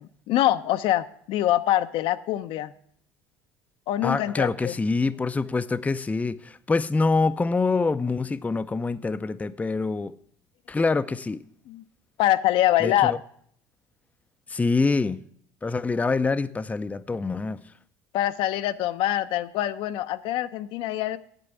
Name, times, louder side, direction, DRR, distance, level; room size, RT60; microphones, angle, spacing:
voice 1, 0.3-2.7 3.9-4.7 11.7-11.8 12.2-13.1 18.1-21.2, left 13 dB, 60° left, 0.6 m, -24 dB
voice 2, 4.0-10.1 10.7-11.4 12.8-13.2 14.5-15.2 15.6-17.6, left 3 dB, 15° left, 0.5 m, -25 dB
8.9 x 7.5 x 8.2 m
hypercardioid pair, 85°, 10 cm